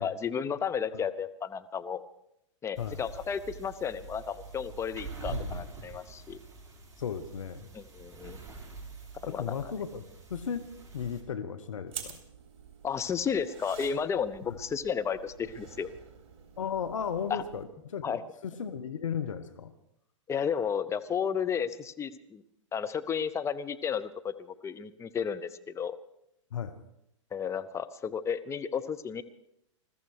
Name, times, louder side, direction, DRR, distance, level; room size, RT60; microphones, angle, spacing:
voice 1, 0.0-2.0 2.6-6.4 7.7-8.4 9.3-9.5 12.8-15.9 17.3-17.4 18.0-18.2 20.3-22.4 22.7-26.0 27.3-29.2, left 7 dB, 15° left, 10 dB, 0.7 m, -33 dB
sound 1, 2.8-11.2, right 4 dB, 20° right, 4.2 m, -45 dB
voice 2, 5.3-5.7 7.0-7.7 9.3-10.0 10.3-10.7 10.9-12.2 14.5-14.6 16.6-19.7 26.5-26.8, left 7 dB, 80° left, 9 dB, 1.0 m, -35 dB
sound 2, 11.9-17.6, right 8 dB, 50° right, 3.4 m, -48 dB
21.0 x 14.0 x 4.7 m, 0.79 s
hypercardioid pair, 110°, 17 cm